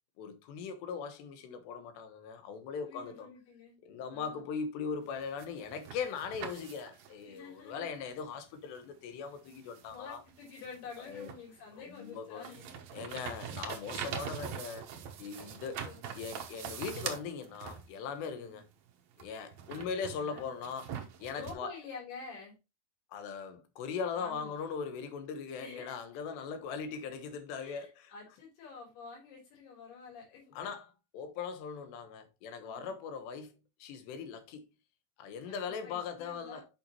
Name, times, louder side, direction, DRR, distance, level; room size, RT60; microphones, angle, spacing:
voice 1, 0.2-3.3 3.8-10.2 11.1-11.3 11.8-12.5 12.9-14.9 15.2-15.8 16.1-18.7 19.2-21.7 23.1-28.1 30.5-33.5 33.8-34.6 35.2-36.7, left 6 dB, 85° left, 3.3 m, -40 dB
voice 2, 2.8-3.8 4.1-4.4 7.2-7.9 9.9-12.9 15.3-16.1 18.4-18.6 19.7-20.5 21.3-22.6 24.2-24.5 25.6-26.0 27.6-30.7 32.6-32.9 35.5-36.6, left 5 dB, 70° left, 5.3 m, -49 dB
sound 1, 5.1-7.2 8.7-8.8 9.5-11.6 12.0-18.2 19.2-21.5, right 8 dB, 90° right, 1.5 m, -43 dB
8.8 x 5.9 x 2.9 m
omnidirectional pair, 4.8 m